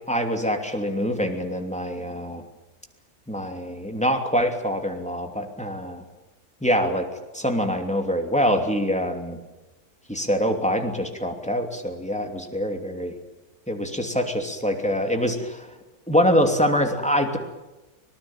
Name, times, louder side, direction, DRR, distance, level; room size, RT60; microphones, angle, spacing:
voice 1, 0.1-2.4 3.3-6.0 6.6-7.1 7.3-9.4 10.1-13.1 13.7-15.7 16.1-17.4, equal, 5° left, 4 dB, 2.8 m, -24 dB
25.0 x 19.5 x 9.1 m, 1.1 s
omnidirectional pair, 1.6 m